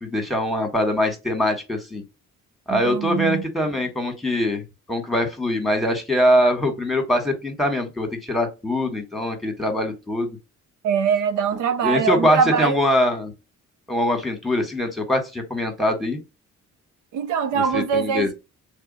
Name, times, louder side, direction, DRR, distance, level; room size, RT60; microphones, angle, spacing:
voice 1, 0.0-2.0 2.7-4.6 4.9-10.4 11.8-13.3 13.9-16.2 17.5-18.3, left 1 dB, ahead, 1.4 m, -23 dB
voice 2, 2.7-3.4 10.8-12.8 17.1-18.3, right 7 dB, 90° right, 0.6 m, -22 dB
3.4 x 2.7 x 4.0 m
cardioid pair, 90°, 30 cm